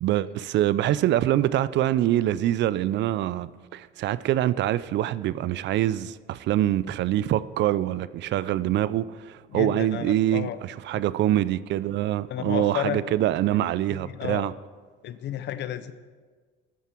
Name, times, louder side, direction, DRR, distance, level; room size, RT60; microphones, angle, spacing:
voice 1, 0.0-14.5, right 13 dB, 60° right, 0.4 m, -25 dB
voice 2, 9.5-10.6 12.3-13.0 13.9-14.5 15.0-15.9, left 11 dB, 60° left, 0.7 m, -32 dB
13.5 x 9.4 x 4.5 m
cardioid pair, 95°, 20 cm